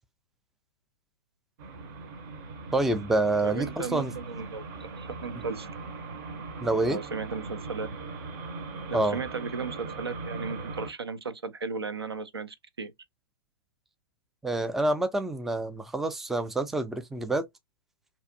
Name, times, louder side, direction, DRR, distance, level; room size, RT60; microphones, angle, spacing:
sound 1, 1.6-10.9, right 3 dB, 50° right, 0.7 m, -40 dB
voice 1, 2.7-4.1 6.6-7.0 8.9-9.2 14.4-17.5, right 2 dB, ahead, 0.3 m, -27 dB
voice 2, 3.4-5.7 6.9-7.9 8.9-12.9, right 4 dB, 85° right, 0.5 m, -35 dB
2.6 x 2.3 x 2.6 m
figure-of-eight pair, 105°, 13 cm